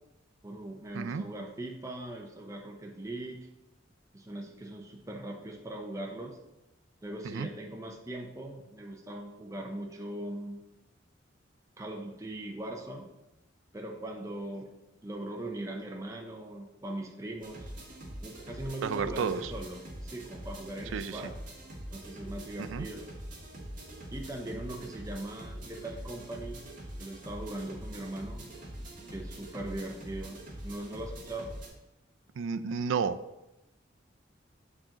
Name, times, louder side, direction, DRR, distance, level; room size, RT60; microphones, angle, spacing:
voice 1, 0.4-3.4 4.1-6.4 7.0-10.6 11.8-13.0 13.7-14.7 15.0-17.7 18.2-21.3 21.9-23.1 24.1-26.6 27.0-28.5 29.1-31.5, right 1 dB, 15° right, 1 dB, 0.6 m, -40 dB
sound 1, 17.4-31.7, right 1 dB, 45° right, 1.7 m, -44 dB
voice 2, 18.8-19.5 20.9-21.2 22.6-22.9 32.4-33.2, right 6 dB, 80° right, 13 dB, 0.4 m, -32 dB
7.3 x 4.9 x 3.8 m, 0.94 s
head